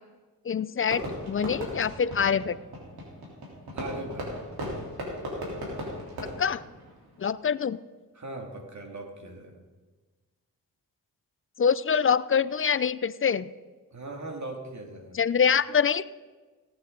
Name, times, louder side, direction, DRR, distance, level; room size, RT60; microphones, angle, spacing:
voice 1, 0.5-2.6 6.4-6.6 7.2-7.8 11.6-13.5 15.1-16.0, left 7 dB, 35° left, 17 dB, 0.5 m, -25 dB
Fireworks, 0.9-7.4, equal, 80° right, 3.6 m, -37 dB
voice 2, 3.7-4.3 8.1-9.6 13.9-15.2, right 2 dB, 50° right, 3 dB, 2.4 m, -39 dB
18.0 x 9.1 x 3.9 m, 1.3 s
cardioid pair, 55°, 37 cm